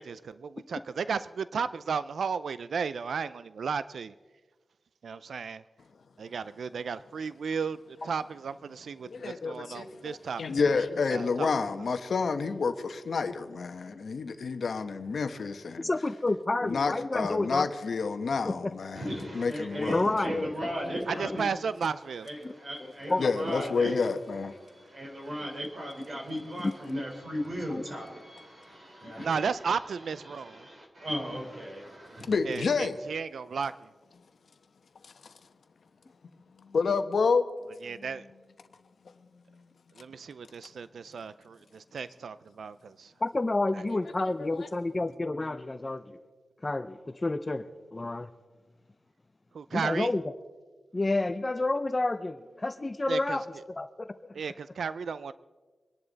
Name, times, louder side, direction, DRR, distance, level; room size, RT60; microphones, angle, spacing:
voice 1, 0.0-4.1 5.0-5.6 6.2-7.8 8.0-10.4 10.7-10.8 11.1-11.5 21.1-22.3 29.2-30.7 32.4-33.7 37.8-38.2 40.0-43.1 49.5-50.1 53.1-53.4 54.3-55.3, right 6 dB, 80° right, 0.4 m, -34 dB
voice 2, 9.0-15.9 16.6-20.5 20.8-21.3 23.2-24.6 32.3-33.0 35.0-35.3 36.6-37.5 37.9-38.1 44.4-44.7, left 4 dB, 65° left, 1.0 m, -30 dB
voice 3, 15.8-17.7 18.4-18.7 19.9-20.3 21.3-21.4 22.4-22.5 22.8-23.3 26.6-26.7 27.7-27.8 43.2-46.2 46.6-48.3 49.7-50.2 50.9-53.4 53.7-54.4, left 2 dB, 25° left, 0.5 m, -30 dB
voice 4, 18.9-21.5 22.2-24.0 24.7-29.5 30.3-32.3, equal, 40° right, 4.0 m, -36 dB
25.5 x 11.0 x 4.0 m
wide cardioid pair, 150°, 0 cm